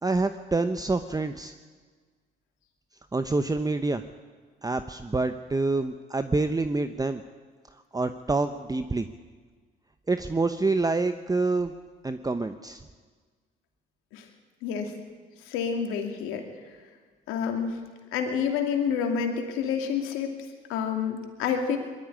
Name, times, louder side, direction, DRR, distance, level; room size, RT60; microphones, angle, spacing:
voice 1, 0.0-1.5 3.1-4.0 4.6-7.2 7.9-9.1 10.1-11.7 12.0-12.8, right 3 dB, 20° right, 9 dB, 0.9 m, -27 dB
voice 2, 14.6-14.9 15.5-16.4 17.3-17.8 18.1-20.4 20.7-21.8, left 7 dB, 90° left, 4 dB, 2.6 m, -28 dB
20.5 x 13.0 x 9.9 m, 1.5 s
supercardioid pair, 65°, 21 cm